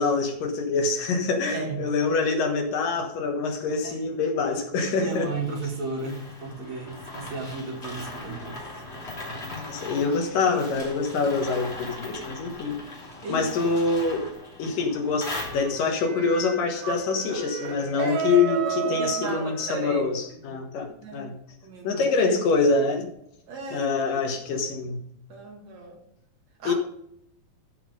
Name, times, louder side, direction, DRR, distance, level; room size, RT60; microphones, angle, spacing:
voice 1, 0.0-5.3 9.5-12.8 13.3-14.3 14.6-21.4 21.8-23.1 23.7-25.0 26.6-26.7, left 4 dB, 70° left, 3 dB, 3.0 m, -25 dB
voice 2, 1.5-1.8 3.8-4.1 5.0-8.8 9.3-9.4 13.2-13.5 18.0-20.0 20.3-20.5 21.0-21.3 21.6-22.0 23.5-24.2 25.3-26.0 26.6-26.7, right 3 dB, 50° right, 0 dB, 3.2 m, -34 dB
sound 1, 5.1-16.0, left 2 dB, 20° left, 3.0 m, -39 dB
sound 2, 15.3-20.1, right 7 dB, 90° right, 3.9 m, -34 dB
14.5 x 5.9 x 5.2 m, 0.74 s
omnidirectional pair, 4.2 m